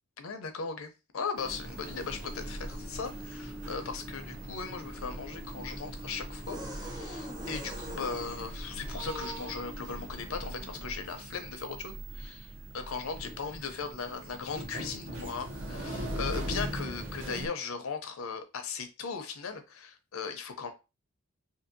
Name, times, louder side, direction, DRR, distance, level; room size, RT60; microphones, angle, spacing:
voice 1, 0.2-20.7, left 5 dB, 80° left, 7 dB, 0.5 m, -38 dB
sound 1, 1.4-17.5, right 1 dB, 55° right, 0.6 m, -40 dB
sound 2, 4.2-10.3, equal, 20° right, 0.6 m, -47 dB
2.7 x 2.6 x 2.6 m, 0.28 s
head